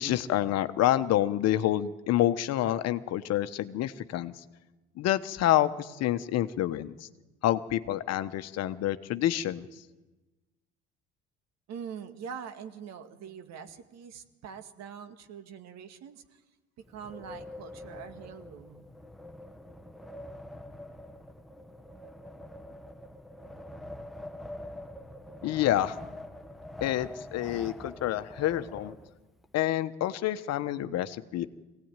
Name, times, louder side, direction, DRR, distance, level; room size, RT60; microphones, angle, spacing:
voice 1, 0.0-4.3 5.0-6.9 7.4-9.6 25.4-26.0 26.8-28.9 29.5-31.5, left 13 dB, 60° left, 11 dB, 1.1 m, -28 dB
voice 2, 11.7-16.2 16.9-18.8, right 7 dB, 60° right, 8 dB, 2.1 m, -43 dB
Wind, 16.8-29.5, left 1 dB, ahead, 1.3 m, -45 dB
23.0 x 17.0 x 9.0 m, 1.2 s
hypercardioid pair, 70°, 30 cm